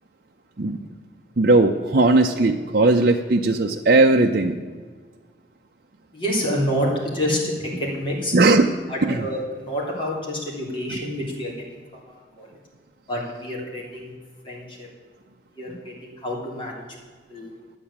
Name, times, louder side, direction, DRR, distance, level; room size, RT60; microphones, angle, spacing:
voice 1, 1.4-4.6 8.3-8.7 9.0-9.3, right 2 dB, 55° right, 2 dB, 0.6 m, -18 dB
voice 2, 6.1-8.3 8.9-11.6 11.9-12.5 13.1-14.1 14.4-14.9 15.6-16.8 17.3-17.5, equal, 30° left, -4 dB, 3.4 m, -28 dB
11.5 x 8.7 x 8.6 m, 1.5 s
head